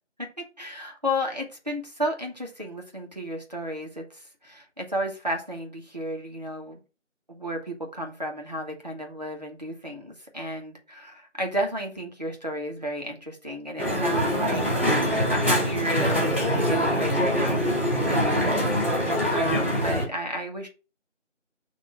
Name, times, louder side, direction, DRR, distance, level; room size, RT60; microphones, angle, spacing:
voice 1, 0.6-6.8 7.3-14.6 14.9-18.6 19.0-20.7, equal, 35° right, 0 dB, 1.3 m, -33 dB
Crowd, 13.8-20.0, equal, 45° left, 3.3 m, -24 dB
6.7 x 3.0 x 5.6 m, 0.32 s
figure-of-eight pair, 175°, 37 cm